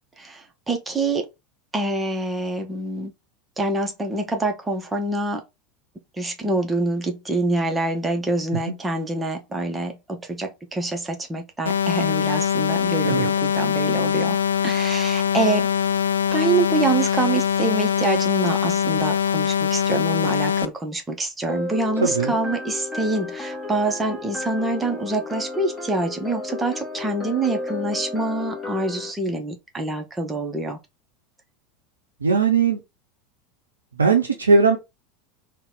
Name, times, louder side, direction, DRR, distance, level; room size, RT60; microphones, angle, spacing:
voice 1, 0.2-1.3 1.7-3.1 3.6-5.4 6.2-14.4 14.6-15.7 16.3-30.8, right 2 dB, 15° right, 0.7 m, -26 dB
sound 1, 11.7-20.7, left 8 dB, 70° left, 0.3 m, -22 dB
sound 2, 21.5-29.1, left 2 dB, 10° left, 1.3 m, -32 dB
voice 2, 22.0-22.3 32.2-32.8 34.0-34.8, right 4 dB, 75° right, 0.5 m, -18 dB
3.8 x 2.2 x 3.7 m
figure-of-eight pair, 80°, 0 cm